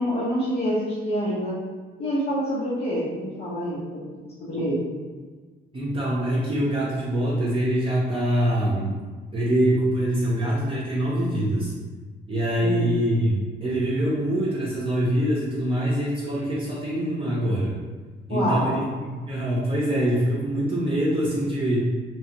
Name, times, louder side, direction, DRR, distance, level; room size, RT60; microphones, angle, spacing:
voice 1, 0.0-1.6 2.0-4.0 4.4-4.8 12.6-12.9 18.3-18.8, equal, 60° left, -9 dB, 0.8 m, -26 dB
voice 2, 5.7-8.9 9.3-11.7 12.3-17.7 18.3-18.8 19.3-21.8, right 1 dB, 25° right, -7 dB, 0.6 m, -24 dB
3.0 x 2.4 x 2.8 m, 1.4 s
cardioid pair, 90°, 20 cm